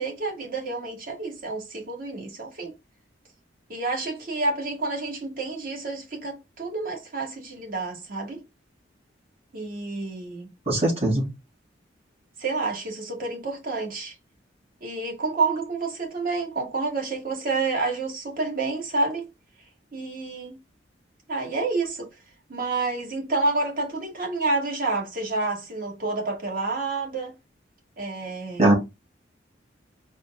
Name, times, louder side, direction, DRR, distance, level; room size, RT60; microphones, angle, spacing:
voice 1, 0.0-2.7 3.7-8.4 9.5-10.5 12.4-14.1 14.8-19.3 19.9-20.6 21.3-22.1 22.5-27.3 28.0-28.7, right 3 dB, 50° right, 1.7 m, -29 dB
voice 2, 10.7-11.3 28.6-28.7, right 1 dB, 35° right, 2.2 m, -20 dB
4.2 x 2.4 x 4.1 m
head